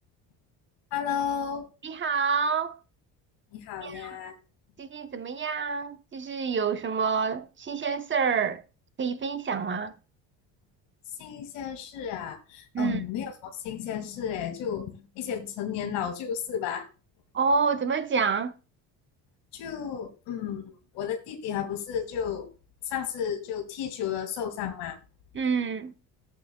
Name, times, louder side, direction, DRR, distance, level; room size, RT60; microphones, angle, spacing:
voice 1, 0.9-1.6 3.5-4.3 11.2-16.9 19.5-22.5 22.9-25.0, left 8 dB, 75° left, 2.4 m, -33 dB
voice 2, 1.8-2.8 3.8-4.1 4.8-8.6 9.0-9.9 12.7-13.0 17.3-18.5 25.3-25.9, right 5 dB, 25° right, 1.1 m, -28 dB
13.5 x 8.5 x 2.3 m
supercardioid pair, 95°, 43 cm